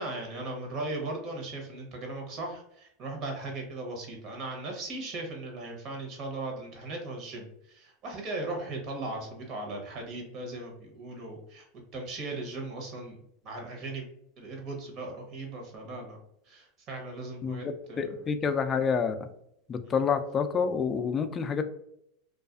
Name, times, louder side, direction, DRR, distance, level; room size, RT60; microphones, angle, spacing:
voice 1, 0.0-11.6 11.9-13.2 13.4-14.1 14.4-16.2 16.5-18.1 19.8-19.9, right 2 dB, 45° right, 1 dB, 0.9 m, -38 dB
voice 2, 17.4-19.1 19.7-21.6, left 6 dB, 25° left, 8 dB, 0.3 m, -28 dB
2.4 x 2.3 x 2.4 m, 0.74 s
supercardioid pair, 115°, 0 cm